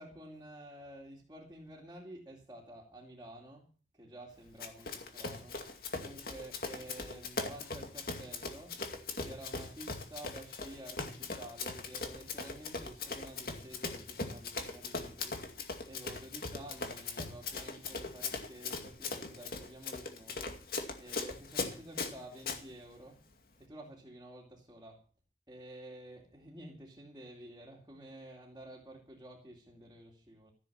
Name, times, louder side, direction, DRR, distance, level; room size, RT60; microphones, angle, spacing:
voice 1, 0.0-3.7 3.9-5.6 6.0-8.8 9.2-15.4 15.8-20.4 21.0-23.2 23.6-25.0 25.5-30.5, right 1 dB, 20° right, -1 dB, 2.6 m, -51 dB
Run, 4.6-22.6, left 4 dB, 55° left, 2.3 m, -40 dB
15.0 x 7.4 x 8.7 m, 0.39 s
head